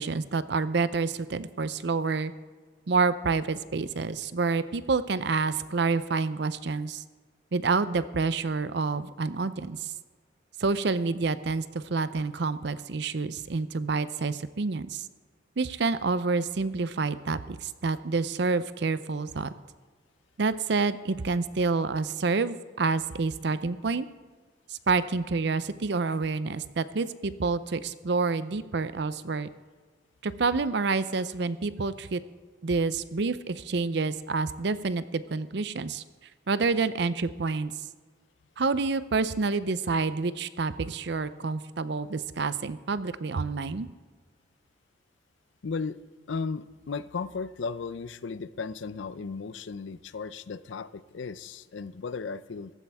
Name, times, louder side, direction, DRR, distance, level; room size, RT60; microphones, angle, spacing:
voice 1, 0.0-2.3 2.9-7.0 7.5-9.9 10.6-15.0 15.6-19.5 20.4-24.0 24.7-29.5 30.2-32.2 32.6-36.0 36.5-37.7 38.6-43.9, right 4 dB, 60° right, 14 dB, 0.6 m, -28 dB
voice 2, 45.6-46.0 46.3-52.7, left 4 dB, 70° left, 16 dB, 0.5 m, -35 dB
15.5 x 13.0 x 3.5 m, 1.5 s
head